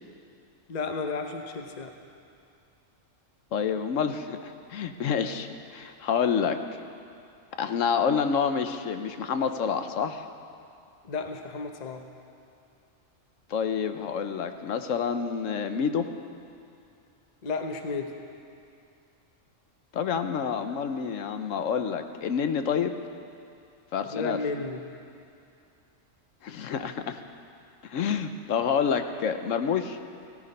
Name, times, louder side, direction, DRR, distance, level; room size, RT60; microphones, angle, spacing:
voice 1, 0.7-1.9 11.0-12.0 17.4-18.2 24.1-24.8, left 4 dB, 40° left, 5 dB, 0.8 m, -32 dB
voice 2, 3.5-6.8 7.6-10.3 13.5-16.1 19.9-22.9 23.9-24.4 26.4-27.2 27.8-30.0, left 7 dB, 80° left, 8 dB, 1.2 m, -28 dB
16.5 x 14.0 x 5.4 m, 2.5 s
omnidirectional pair, 1.3 m